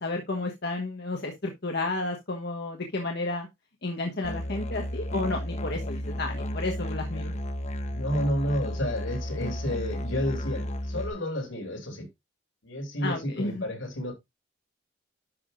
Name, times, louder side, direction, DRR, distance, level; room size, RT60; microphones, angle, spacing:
voice 1, 0.0-3.5 3.8-7.3 13.0-13.6, left 2 dB, 55° left, 1.2 m, -32 dB
Musical instrument, 4.2-11.1, equal, 35° left, 0.9 m, -33 dB
voice 2, 7.9-12.1 12.6-14.1, equal, 80° left, 3.0 m, -31 dB
10.5 x 5.9 x 2.5 m
head